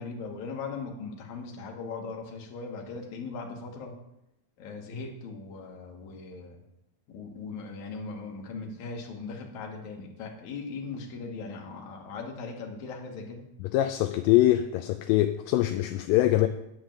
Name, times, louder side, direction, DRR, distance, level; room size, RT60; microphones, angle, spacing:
voice 1, 0.0-3.9 4.6-6.6 7.1-13.5, left 4 dB, 65° left, 1 dB, 2.6 m, -39 dB
voice 2, 13.6-16.5, left 14 dB, 85° left, 8 dB, 2.2 m, -23 dB
10.5 x 4.9 x 7.4 m, 0.85 s
omnidirectional pair, 4.0 m